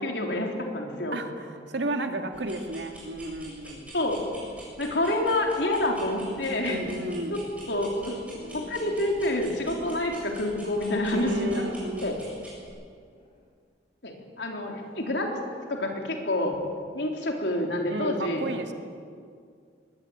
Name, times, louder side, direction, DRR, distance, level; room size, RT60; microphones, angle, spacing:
voice 1, 0.0-1.2 3.6-4.2 4.8-6.8 7.3-7.4 7.7-11.7 12.0-12.2 14.0-15.3 15.7-16.5 16.9-18.4, left 1 dB, 70° left, 1 dB, 3.8 m, -28 dB
voice 2, 1.1-3.9 6.7-7.5 11.1-12.0 17.9-18.7, right 1 dB, 75° right, 5 dB, 2.2 m, -33 dB
sound 1, 2.3-12.7, right 1 dB, 5° right, 7.9 m, -47 dB
sound 2, 5.0-6.5 7.9-9.6 10.8-13.4 14.8-15.8, left 1 dB, 30° left, 5.1 m, -49 dB
21.5 x 18.5 x 8.9 m, 2.2 s
head